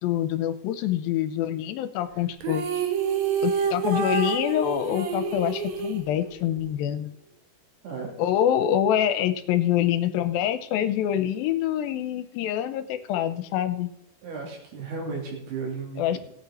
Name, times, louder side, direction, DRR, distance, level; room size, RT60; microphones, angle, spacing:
voice 1, 0.0-2.6 3.4-7.1 8.2-13.9 16.0-16.2, left 11 dB, 80° left, 11 dB, 2.3 m, -25 dB
sound 1, 2.4-6.7, right 6 dB, 65° right, 1.8 m, -28 dB
voice 2, 14.2-16.2, right 4 dB, 85° right, -1 dB, 4.8 m, -34 dB
17.5 x 8.7 x 4.2 m, 0.78 s
omnidirectional pair, 4.5 m